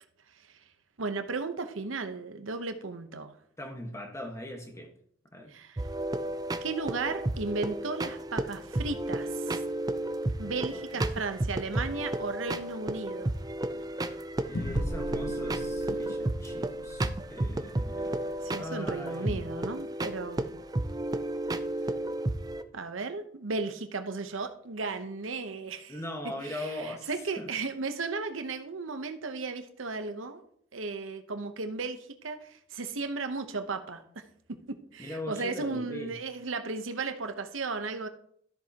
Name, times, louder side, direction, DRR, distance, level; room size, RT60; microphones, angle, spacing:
voice 1, 1.0-3.3 5.5-5.8 6.6-9.6 10.4-13.3 13.7-13.9 18.4-20.5 22.7-26.0 26.4-30.4 30.7-34.0 34.7-38.1, right 3 dB, 90° right, 8 dB, 0.9 m, -35 dB
voice 2, 3.6-4.9 5.3-5.5 10.4-11.0 14.5-19.5 21.7-21.9 25.9-27.5 35.0-36.2, left 1 dB, 15° left, 2 dB, 1.5 m, -41 dB
sound 1, 5.8-22.6, right 1 dB, 20° right, 0.4 m, -33 dB
sound 2, 14.5-19.4, left 1 dB, 65° left, 0.9 m, -40 dB
13.0 x 7.4 x 2.9 m, 0.66 s
head